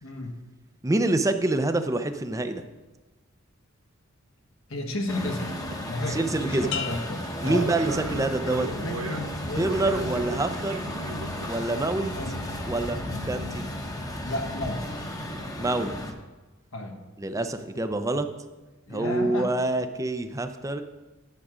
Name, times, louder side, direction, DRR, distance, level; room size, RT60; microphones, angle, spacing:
voice 1, 0.0-0.4 4.7-5.5 5.9-7.7 8.4-10.1 12.1-12.3 14.2-14.8 16.7-17.0 18.9-19.5, left 1 dB, 75° left, 2 dB, 1.4 m, -33 dB
voice 2, 0.8-2.6 6.1-6.7 7.4-8.7 9.6-10.8 11.5-12.1 12.7-13.0 13.2-13.6 15.6-15.9 17.2-18.3 18.9-20.8, right 2 dB, 15° right, 8 dB, 0.5 m, -26 dB
Truck, 5.1-16.1, left 1 dB, 15° left, 0.9 m, -34 dB
sound 1, 5.1-5.3 5.6-12.7, right 2 dB, 85° right, 1.0 m, -39 dB
sound 2, 6.7-8.5 9.0-9.4, left 8 dB, 60° left, 0.6 m, -38 dB
9.6 x 7.4 x 5.0 m, 1.2 s
head